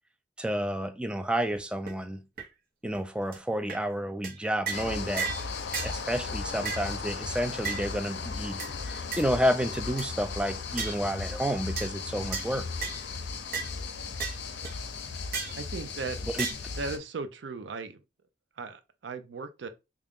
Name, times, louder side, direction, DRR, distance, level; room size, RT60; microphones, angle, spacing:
voice 1, 0.4-2.2 2.8-5.3 5.8-12.7 16.3-16.5, equal, 5° right, 0.3 m, -30 dB
sound 1, 1.6-1.7 1.9-2.0 2.4-2.5 2.9-3.0 3.3-3.4 3.7-3.8 4.2-4.4 4.7-4.9 5.2-5.4 5.7-5.9 6.6-6.9 7.6-7.8 8.6-8.7 9.1-9.2 9.7-10.1 10.8-11.0 11.8-11.9 12.3-12.5 12.8-13.0 13.5-13.7 14.2-14.4 14.6-14.7 15.3-15.6 16.4-16.5, right 6 dB, 55° right, 0.8 m, -33 dB
sound 2, 4.7-17.0, left 4 dB, 70° left, 0.5 m, -36 dB
voice 2, 15.6-16.3 16.8-18.0 18.6-19.7, right 4 dB, 75° right, 0.5 m, -37 dB
3.7 x 2.3 x 3.5 m
head